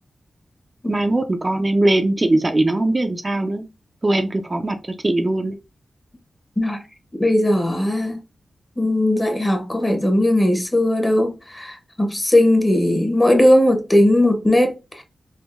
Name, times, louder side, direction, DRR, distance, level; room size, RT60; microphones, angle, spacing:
voice 1, 0.9-3.6 4.0-4.8 5.0-5.6, right 2 dB, 35° right, 0.5 m, -20 dB
voice 2, 7.2-8.2 8.8-15.0, left 1 dB, 20° left, 1.0 m, -18 dB
3.7 x 2.5 x 2.5 m
cardioid pair, 55°, 0 cm